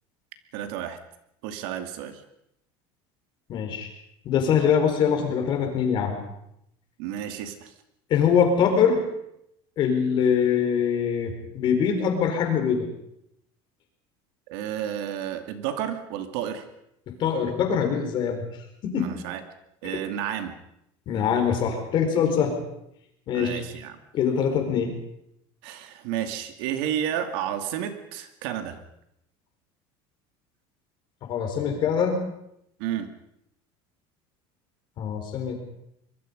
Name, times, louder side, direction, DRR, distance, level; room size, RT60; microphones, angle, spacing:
voice 1, 0.5-1.0 1.4-2.2 7.0-7.7 14.5-16.7 18.9-19.4 19.8-20.6 23.3-24.0 25.6-28.8 32.8-33.1, right 10 dB, 75° right, 7 dB, 2.4 m, -31 dB
voice 2, 3.5-3.9 4.2-6.2 8.1-9.1 9.8-12.9 17.2-18.5 18.8-19.1 21.1-22.5 23.3-23.6 24.1-24.9 31.2-32.3 35.0-35.6, left 7 dB, 40° left, 4 dB, 4.6 m, -23 dB
25.0 x 22.5 x 5.3 m, 0.78 s
cardioid pair, 165°, 12 cm